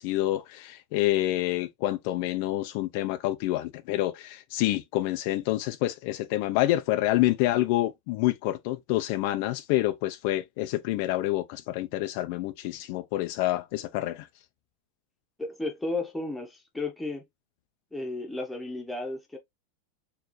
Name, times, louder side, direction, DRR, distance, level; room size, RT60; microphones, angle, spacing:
voice 1, 0.0-14.3, left 16 dB, 50° left, 0.6 m, -27 dB
voice 2, 15.4-17.2 17.9-19.4, left 2 dB, 5° left, 1.2 m, -33 dB
4.6 x 3.2 x 3.1 m
supercardioid pair, 165°, 0 cm